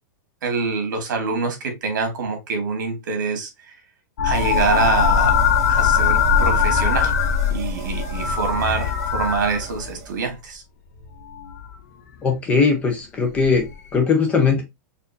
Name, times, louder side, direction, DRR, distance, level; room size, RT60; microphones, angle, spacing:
voice 1, 0.4-3.5 4.2-5.4 5.7-7.1 7.5-10.6, right 4 dB, 70° right, 1.6 m, -25 dB
sound 1, 4.2-10.0 11.2-11.7 13.4-13.6, left 7 dB, 55° left, 0.7 m, -20 dB
sound 2, 4.3-10.4, right 4 dB, 50° right, 1.0 m, -34 dB
voice 2, 12.2-14.6, left 5 dB, 15° left, 0.6 m, -19 dB
4.3 x 2.6 x 2.6 m
supercardioid pair, 170°, 10 cm